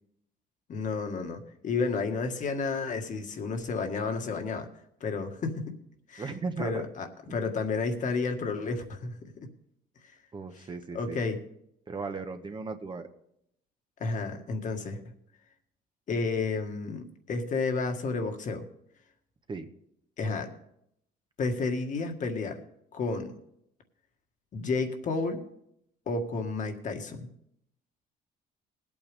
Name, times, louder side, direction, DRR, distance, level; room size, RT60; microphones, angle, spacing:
voice 1, 0.7-4.7 5.0-5.8 6.1-6.3 6.6-9.1 10.6-10.7 10.9-11.4 14.0-15.0 16.1-18.6 20.2-20.5 21.4-22.6 22.9-23.4 24.5-25.4 26.1-27.3, left 4 dB, 50° left, 5 dB, 1.8 m, -31 dB
voice 2, 6.2-6.8 10.3-11.2 11.9-13.1 19.5-19.6, right 4 dB, 30° right, 6 dB, 1.1 m, -36 dB
20.0 x 8.7 x 3.5 m, 0.74 s
cardioid pair, 110°, 17 cm